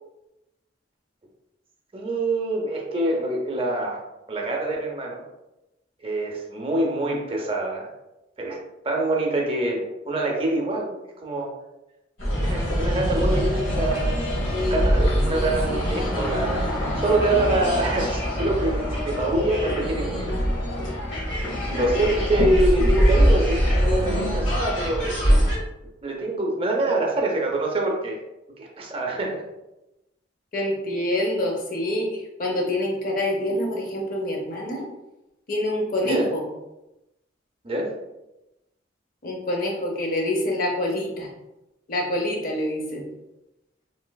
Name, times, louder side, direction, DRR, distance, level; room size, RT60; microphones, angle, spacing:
voice 1, 1.9-4.0 4.3-5.2 6.0-7.9 8.4-11.6 12.4-16.6 16.9-20.3 21.4-25.1 26.0-28.2 28.6-29.4 36.0-36.3 37.6-38.0, right 2 dB, 30° right, 0 dB, 0.6 m, -25 dB
sound 1, 12.2-25.6, equal, 80° left, 1.4 m, -23 dB
voice 2, 30.5-34.8 35.5-36.4 39.2-41.3 41.9-43.0, left 1 dB, 45° left, 0 dB, 0.7 m, -26 dB
3.2 x 2.9 x 2.2 m, 0.94 s
head